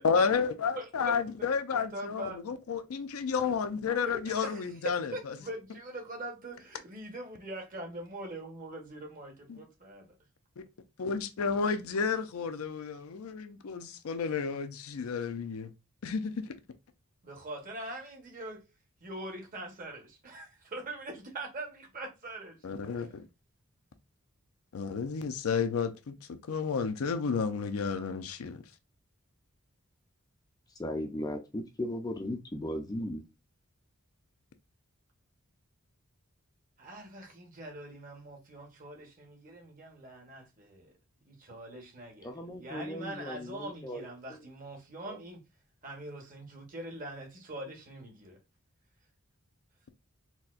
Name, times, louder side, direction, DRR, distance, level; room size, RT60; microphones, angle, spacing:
voice 1, 0.0-5.1 9.5-9.6 10.6-10.7 11.0-15.7 16.0-16.5 22.6-23.3 24.7-28.6, left 5 dB, 80° left, 0.5 m, -31 dB
voice 2, 0.8-1.1 1.7-2.4 4.1-10.2 17.2-18.6 19.0-22.7 22.9-23.1 36.8-41.0 41.2-45.4 45.8-48.4, right 1 dB, 40° right, 1.0 m, -43 dB
voice 3, 30.8-33.2 42.2-44.0 45.1-45.2, left 1 dB, 20° left, 0.4 m, -37 dB
4.1 x 2.1 x 2.4 m
head